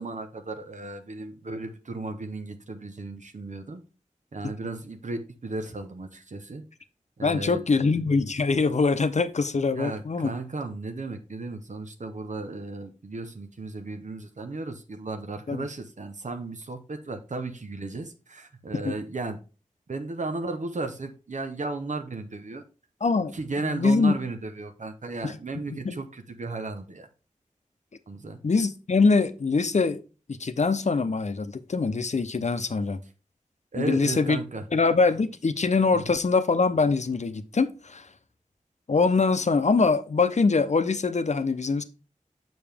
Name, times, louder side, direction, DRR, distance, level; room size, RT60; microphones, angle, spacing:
voice 1, 0.0-3.8 4.3-6.6 7.2-7.9 9.7-19.4 19.9-22.6 23.3-27.1 28.1-28.4 33.7-34.6 35.9-36.2, right 3 dB, 65° right, 0.8 m, -35 dB
voice 2, 7.2-10.3 15.5-15.7 18.7-18.9 23.0-23.3 23.6-24.1 25.2-26.0 28.4-30.0 30.3-33.0 33.8-34.4 34.7-38.1 38.9-41.8, left 4 dB, 60° left, 0.7 m, -23 dB
7.0 x 6.0 x 3.4 m
wide cardioid pair, 60°, 14 cm